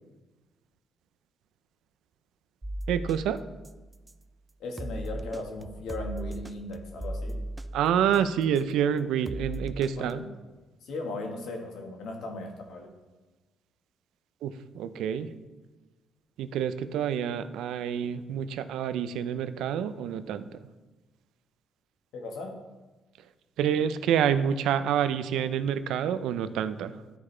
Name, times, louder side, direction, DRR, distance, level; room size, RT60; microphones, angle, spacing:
sound 1, 2.6-4.3 4.8-8.8 9.3-10.1, right 1 dB, 15° right, 0.4 m, -38 dB
voice 1, 2.9-3.4 7.7-10.2 14.4-15.3 16.4-20.6 23.6-27.0, right 9 dB, 85° right, 12 dB, 0.4 m, -28 dB
voice 2, 4.6-7.5 10.0-10.3 10.8-12.9 22.1-22.6, left 2 dB, 80° left, 3 dB, 1.4 m, -37 dB
13.0 x 5.0 x 3.2 m, 1.2 s
cardioid pair, 90°, 0 cm